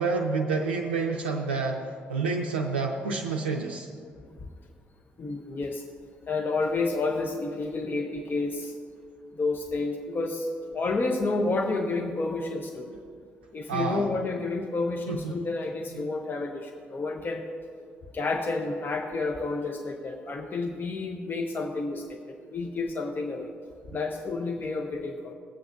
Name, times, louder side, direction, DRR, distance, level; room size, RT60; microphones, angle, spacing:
voice 1, 0.0-3.9 13.7-14.1 15.1-15.4 15.9-16.0, right 4 dB, 85° right, 1 dB, 0.4 m, -29 dB
voice 2, 5.2-5.8 6.3-8.7 9.4-10.5 10.7-12.9 13.5-17.4 18.1-23.5 23.9-25.3, left 3 dB, 35° left, 4 dB, 0.8 m, -30 dB
19.0 x 8.1 x 2.6 m, 2.2 s
figure-of-eight pair, 45°, 6 cm